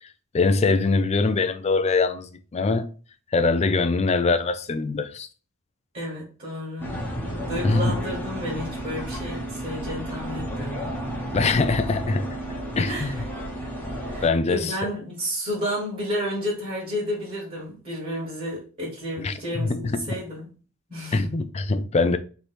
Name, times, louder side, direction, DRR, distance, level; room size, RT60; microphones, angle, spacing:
voice 1, 0.3-2.9 3.3-5.3 7.6-8.0 11.3-12.4 12.8-13.2 14.2-14.7 19.2-20.1 21.1-22.2, left 3 dB, 30° left, 0.4 m, -23 dB
voice 2, 5.9-7.0 7.4-11.0 12.9-13.7 14.0-20.5 20.9-21.3, equal, 40° right, 1.7 m, -31 dB
sound 1, 6.8-14.3, right 1 dB, 10° left, 1.0 m, -32 dB
3.3 x 3.0 x 4.2 m
head